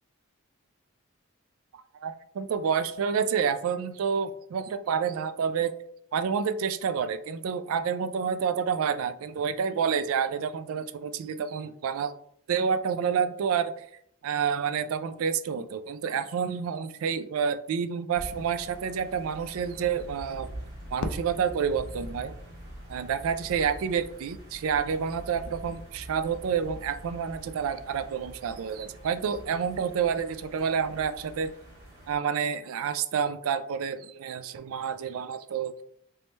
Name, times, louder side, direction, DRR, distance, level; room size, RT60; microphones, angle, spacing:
voice 1, 1.9-5.7 6.1-12.1 12.5-13.7 14.2-20.5 20.9-22.3 22.9-31.5 32.1-35.8, right 7 dB, 70° right, 12 dB, 0.3 m, -29 dB
sound 1, 18.1-32.1, right 1 dB, 50° right, 1.4 m, -44 dB
Fireworks, 21.0-23.2, left 3 dB, 60° left, 0.3 m, -40 dB
3.1 x 3.1 x 3.2 m, 0.67 s
head